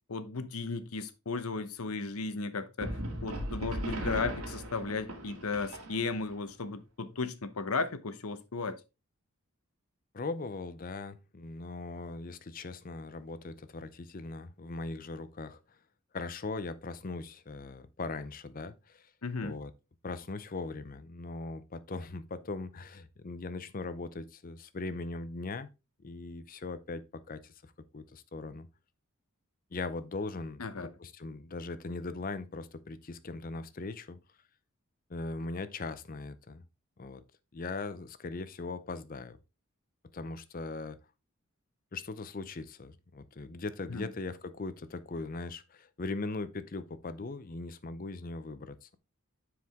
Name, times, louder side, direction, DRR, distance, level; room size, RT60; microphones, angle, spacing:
voice 1, 0.1-3.0 3.2-8.7 19.2-19.5 30.6-30.9 43.9-44.1, left 4 dB, 80° left, 0.9 m, -35 dB
sound 1, 2.8-6.3, right 1 dB, 85° right, 2.3 m, -37 dB
voice 2, 10.1-15.8 16.1-19.1 19.4-19.7 20.0-25.7 26.0-28.7 29.7-34.2 35.1-36.6 37.0-37.2 37.5-39.4 40.1-41.0 41.9-49.0, left 3 dB, 40° left, 0.5 m, -40 dB
9.3 x 4.8 x 3.5 m
head